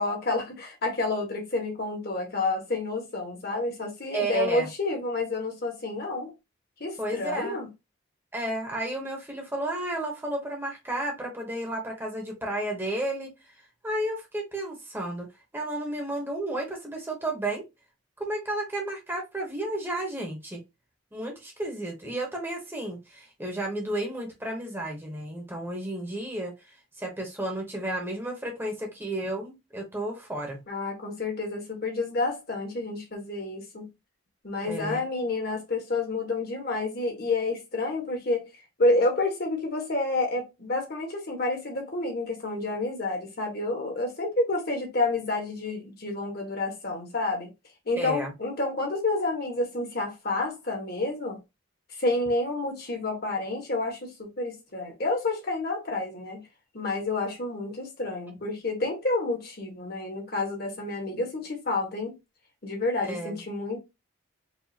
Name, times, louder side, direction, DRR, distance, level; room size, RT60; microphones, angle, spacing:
voice 1, 0.0-6.3 6.8-7.7 30.7-33.9 34.4-38.5 38.8-47.5 47.8-51.4 51.9-56.4 56.7-62.1 62.6-63.8, left 2 dB, 50° left, 1.5 m, -29 dB
voice 2, 4.1-4.7 7.0-7.6 8.3-13.3 13.8-15.3 15.5-17.6 18.2-20.6 21.1-30.6 34.6-35.0 48.0-48.3 63.0-63.4, right 1 dB, 10° right, 1.1 m, -32 dB
4.7 x 2.7 x 2.8 m
head